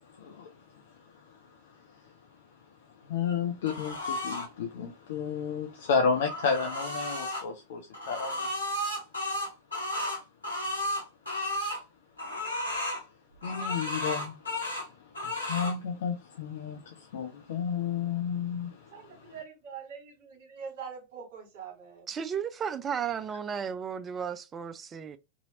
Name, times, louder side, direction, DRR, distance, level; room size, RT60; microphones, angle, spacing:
voice 1, 0.2-0.5 3.0-7.8 8.1-8.5 13.4-14.3 15.2-18.9, left 6 dB, 55° left, 0.4 m, -31 dB
sound 1, 3.6-4.5 5.8-7.4 7.9-11.8 12.2-13.0 13.4-14.9 15.1-15.7, left 1 dB, 80° left, 1.3 m, -33 dB
voice 2, 18.9-22.1, right 6 dB, 50° right, 1.4 m, -44 dB
voice 3, 22.1-25.2, right 7 dB, 25° right, 0.3 m, -34 dB
2.8 x 2.7 x 2.7 m
figure-of-eight pair, 90°, 0 cm